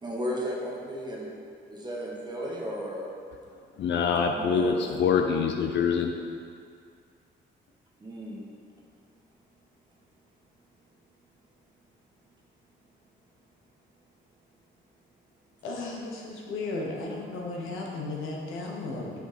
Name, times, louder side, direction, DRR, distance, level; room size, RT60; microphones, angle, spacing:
voice 1, 0.0-1.3 1.7-3.1 4.3-4.9 8.0-8.4, equal, 20° right, -3 dB, 1.5 m, -34 dB
voice 2, 3.8-6.1, left 6 dB, 65° left, 4 dB, 0.5 m, -25 dB
voice 3, 15.6-19.1, left 3 dB, 90° left, -1 dB, 1.2 m, -35 dB
6.2 x 5.1 x 5.1 m, 2.3 s
cardioid pair, 90°, 20 cm